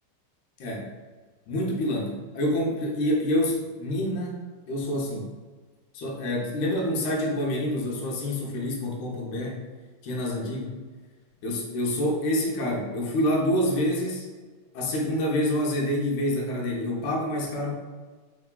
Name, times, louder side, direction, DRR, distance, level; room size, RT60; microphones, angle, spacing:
voice 1, 1.5-4.4 4.7-5.3 5.9-9.6 10.0-10.8 11.4-14.3 14.7-17.7, left 1 dB, 75° left, -2 dB, 1.9 m, -27 dB
4.8 x 3.5 x 2.2 m, 1.4 s
omnidirectional pair, 3.7 m